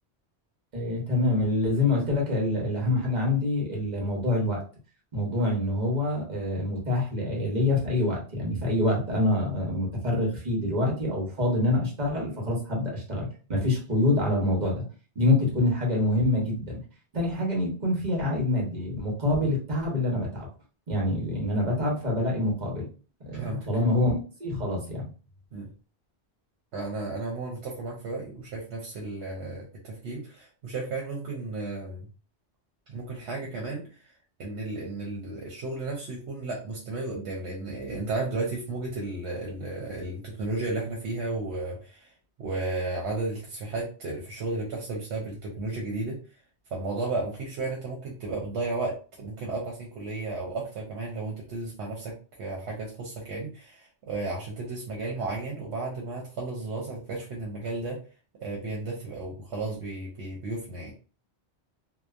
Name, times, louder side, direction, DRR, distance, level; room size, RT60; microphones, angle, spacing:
voice 1, 0.7-4.6 5.1-14.8 15.1-16.8 17.1-20.5 20.9-22.9 23.3-25.1, left 2 dB, 45° right, -2 dB, 1.0 m, -26 dB
voice 2, 23.3-23.7 25.5-25.7 26.7-32.1 32.9-34.1 34.4-42.1 42.4-46.2 46.7-58.0 58.4-60.9, right 3 dB, 80° right, -1 dB, 0.9 m, -33 dB
2.9 x 2.1 x 2.4 m, 0.36 s
omnidirectional pair, 1.1 m